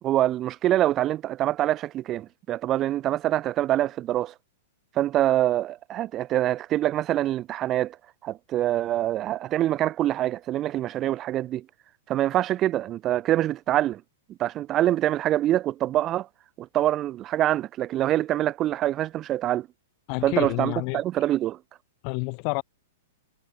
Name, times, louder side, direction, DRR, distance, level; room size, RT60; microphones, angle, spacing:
voice 1, 0.0-4.3 4.9-8.0 8.2-11.6 12.1-14.0 14.4-16.3 16.6-19.7 20.2-21.6, right 13 dB, 25° right, 1.3 m, -25 dB
voice 2, 20.1-21.0 22.0-22.6, left 40 dB or more, 40° left, 4.3 m, -29 dB
hypercardioid pair, 145°, 0 cm